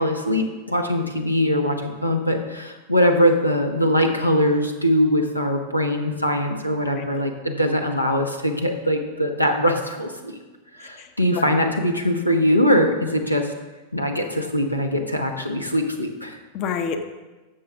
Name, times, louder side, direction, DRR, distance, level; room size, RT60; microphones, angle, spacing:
voice 1, 0.0-10.4 10.8-13.5 13.9-16.4, equal, 85° left, 5 dB, 0.9 m, -22 dB
voice 2, 6.8-7.2 11.0-11.5 16.5-17.0, left 6 dB, 40° left, 8 dB, 0.8 m, -30 dB
13.0 x 6.8 x 3.5 m, 1.2 s
figure-of-eight pair, 90°, 0 cm